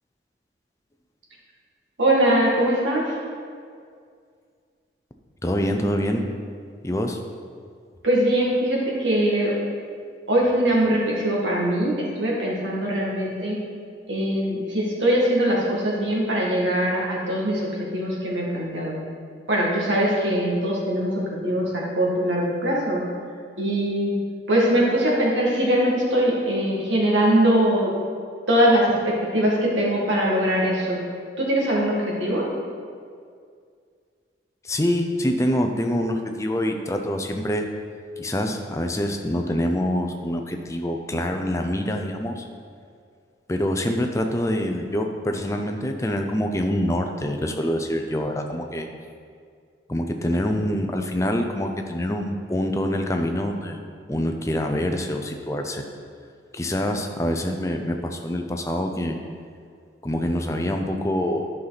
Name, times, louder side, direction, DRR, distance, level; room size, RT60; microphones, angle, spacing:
voice 1, 2.0-3.1 8.0-9.5 10.3-13.6 14.1-19.0 19.5-23.0 23.6-24.1 24.5-27.9 28.5-31.0 31.4-32.5, right 1 dB, 80° right, -3 dB, 1.9 m, -22 dB
voice 2, 5.4-6.3 6.8-7.2 34.6-37.7 38.2-42.5 43.5-48.9 49.9-53.8 54.1-55.8 56.5-59.2 60.0-61.5, left 1 dB, 15° left, 4 dB, 0.5 m, -25 dB
10.5 x 5.7 x 4.0 m, 2.2 s
head